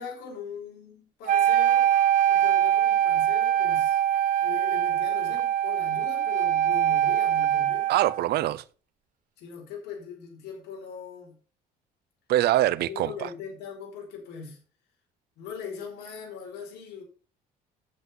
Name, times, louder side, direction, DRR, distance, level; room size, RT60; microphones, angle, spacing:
voice 1, 0.0-1.9 2.3-4.0 4.4-7.9 9.4-11.3 12.8-14.6 15.4-17.0, left 6 dB, 80° left, 4.7 m, -40 dB
Wind instrument woodwind instrument, 1.3-8.2, right 10 dB, 55° right, 1.0 m, -23 dB
voice 2, 7.9-8.6 12.3-13.3, right 14 dB, 70° right, 0.7 m, -24 dB
9.7 x 8.2 x 5.5 m
cardioid pair, 110°, 17 cm